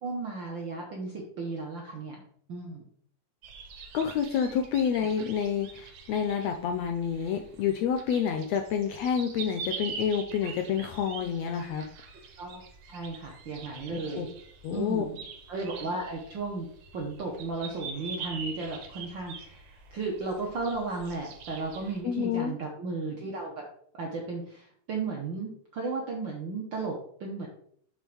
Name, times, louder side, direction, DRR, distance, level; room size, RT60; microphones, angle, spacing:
voice 1, 0.0-2.2 2.5-2.9 10.4-10.5 12.4-14.3 14.7-15.2 15.5-16.7 16.9-19.6 19.9-23.7 24.0-27.5, right 3 dB, 85° right, -1 dB, 1.0 m, -35 dB
sound 1, 3.4-22.0, right 5 dB, 70° right, 2.3 m, -44 dB
voice 2, 3.9-11.8 13.9-14.3 14.6-15.1 22.0-22.5, left 7 dB, 90° left, 5 dB, 1.5 m, -28 dB
7.3 x 3.4 x 6.1 m, 0.62 s
omnidirectional pair, 3.6 m